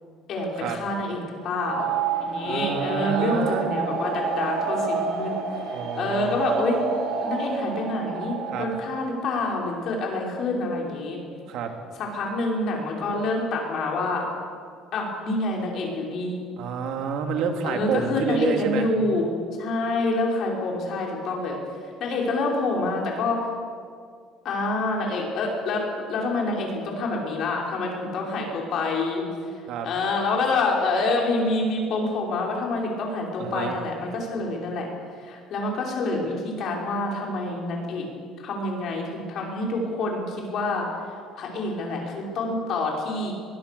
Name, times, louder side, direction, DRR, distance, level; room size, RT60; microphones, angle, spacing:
voice 1, 0.3-1.9 2.2-6.8 7.2-11.2 12.0-14.3 14.9-16.4 17.6-19.3 19.6-21.6 22.0-23.5 24.4-25.8 26.1-29.2 29.8-34.9 35.2-38.1 38.4-40.9 41.4-43.3, left 2 dB, 45° left, -1 dB, 5.4 m, -27 dB
sound 1, 1.5-9.2, right 5 dB, 85° right, 7.7 m, -29 dB
voice 2, 2.4-3.7 5.7-6.4 8.5-8.7 11.5-11.7 16.6-18.9 29.7-29.9 33.4-33.8, right 6 dB, 60° right, 4 dB, 2.6 m, -29 dB
22.5 x 22.0 x 6.9 m, 2.1 s
cardioid pair, 170°, 0 cm